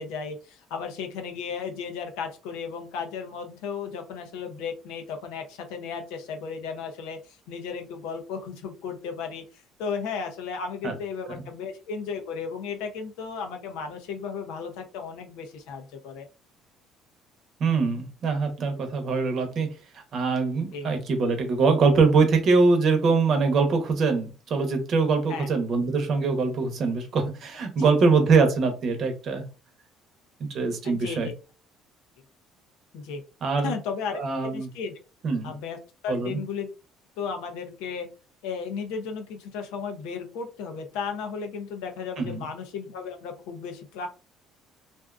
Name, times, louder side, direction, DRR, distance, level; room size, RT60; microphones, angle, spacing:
voice 1, 0.0-16.3 20.7-20.9 25.3-25.5 27.9-28.0 30.8-31.3 32.9-33.2 33.6-34.2 34.5-34.9 35.4-35.8 36.0-36.7 37.2-38.1 38.4-44.1, left 5 dB, 90° left, 0.6 m, -34 dB
voice 2, 17.6-29.5 30.4-31.3 33.4-33.7 34.1-34.7 35.2-35.5 36.1-36.4 42.2-42.4, right 4 dB, 50° right, 0.8 m, -23 dB
2.5 x 2.3 x 2.4 m
cardioid pair, 110°, 0 cm